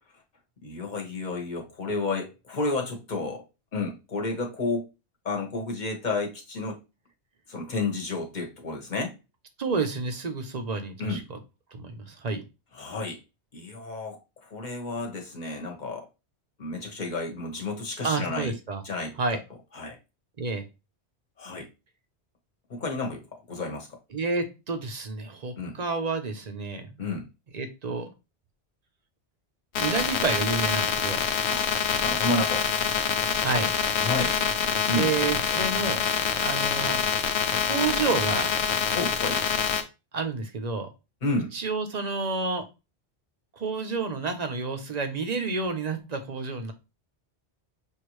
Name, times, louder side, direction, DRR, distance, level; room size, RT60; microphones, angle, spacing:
voice 1, 0.6-3.4 3.7-4.8 5.2-6.8 7.5-9.1 11.0-11.2 12.7-13.2 13.5-16.1 16.6-18.5 18.8-19.1 19.7-20.0 21.4-21.7 22.7-23.9 25.6-25.8 27.0-27.3 31.5-31.7 32.0-32.7 34.0-34.4 34.9-35.1 38.9-39.4 41.2-41.5, left 3 dB, 45° left, 2 dB, 1.2 m, -31 dB
voice 2, 9.6-11.4 11.7-12.4 18.0-18.8 19.2-19.4 20.4-20.6 24.1-27.0 27.5-28.1 29.8-31.2 33.4-33.7 34.9-36.0 36.3-37.0 37.6-38.5 40.1-40.9 41.5-42.6 43.5-46.7, right 4 dB, 40° right, 7 dB, 0.8 m, -29 dB
sound 1, 29.7-39.8, left 7 dB, 75° left, 0.9 m, -26 dB
6.4 x 2.6 x 3.1 m, 0.27 s
omnidirectional pair, 1.1 m